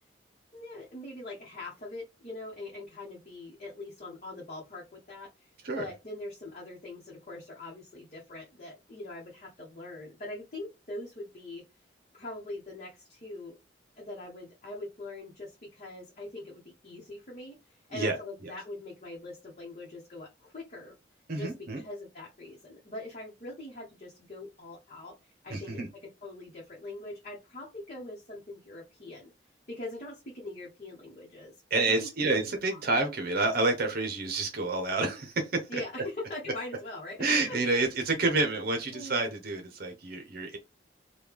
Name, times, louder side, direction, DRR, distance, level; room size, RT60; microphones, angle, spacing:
voice 1, 0.5-11.6 12.1-13.6 14.0-21.0 21.3-21.5 21.8-25.9 26.2-29.3 29.7-32.1 32.4-32.9 35.7-37.6 38.9-39.2, left 2 dB, 40° left, 0.9 m, -42 dB
voice 2, 21.3-21.8 25.5-25.9 31.7-35.8 37.2-40.6, right 3 dB, 55° right, 0.7 m, -29 dB
3.1 x 2.2 x 3.5 m
head